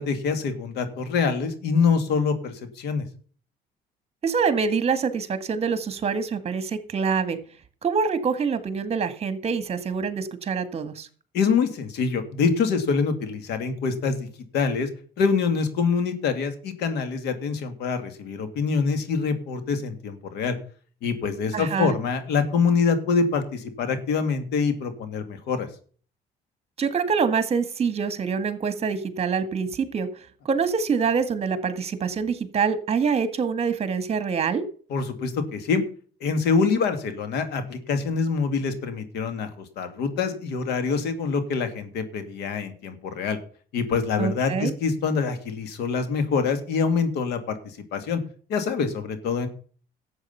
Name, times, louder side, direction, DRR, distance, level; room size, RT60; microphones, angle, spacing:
voice 1, 0.0-3.1 11.3-14.3 14.5-14.9 15.2-20.5 21.0-25.7 34.9-35.8 36.2-43.4 43.7-48.2 48.5-49.5, left 5 dB, 80° left, 10 dB, 2.4 m, -25 dB
voice 2, 4.2-7.4 7.8-11.1 21.5-21.9 26.8-30.1 30.5-34.6 44.2-44.7, right 5 dB, 40° right, 12 dB, 1.8 m, -25 dB
12.5 x 8.0 x 5.6 m, 0.43 s
cardioid pair, 110°, 17 cm